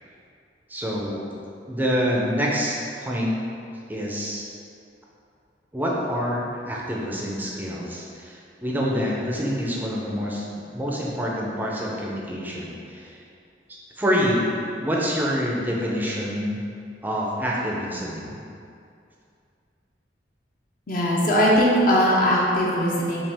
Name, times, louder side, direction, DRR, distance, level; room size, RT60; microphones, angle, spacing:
voice 1, 0.7-1.2 1.7-3.3 3.9-4.5 5.7-10.5 10.7-13.2 13.7-16.6 17.0-18.4, equal, 10° right, -3 dB, 0.5 m, -26 dB
voice 2, 20.9-23.2, equal, 50° left, -5 dB, 0.7 m, -20 dB
5.7 x 2.4 x 3.4 m, 2.5 s
head